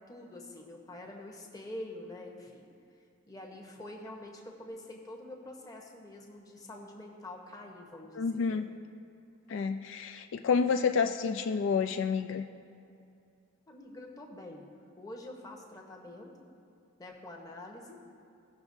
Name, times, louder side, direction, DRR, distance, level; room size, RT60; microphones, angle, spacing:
voice 1, 0.1-2.7 3.3-8.7 13.7-14.7 15.0-16.3 17.0-18.0, left 1 dB, 15° left, 0 dB, 0.9 m, -46 dB
voice 2, 8.2-8.7 9.5-12.4, left 5 dB, 65° left, 6 dB, 0.3 m, -29 dB
17.5 x 5.9 x 2.7 m, 2.6 s
head